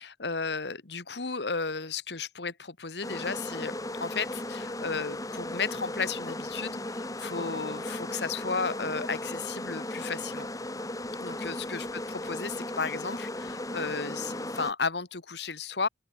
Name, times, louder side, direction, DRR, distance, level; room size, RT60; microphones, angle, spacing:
voice 1, 0.0-3.7 4.0-10.5 11.2-15.9, left 4 dB, 75° left, 1.7 m, -34 dB
sound 1, 3.0-14.7, left 1 dB, 20° left, 2.8 m, -36 dB
head